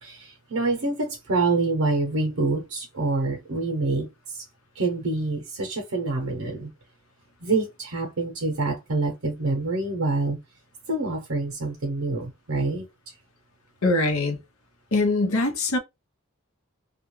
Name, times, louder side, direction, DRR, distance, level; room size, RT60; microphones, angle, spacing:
voice 1, 0.0-4.4 4.8-6.7 7.4-10.4 10.9-12.9, right 3 dB, 70° right, 0.7 m, -26 dB
voice 2, 13.8-14.4 14.9-15.8, left 2 dB, 75° left, 0.8 m, -22 dB
2.4 x 2.2 x 3.0 m
head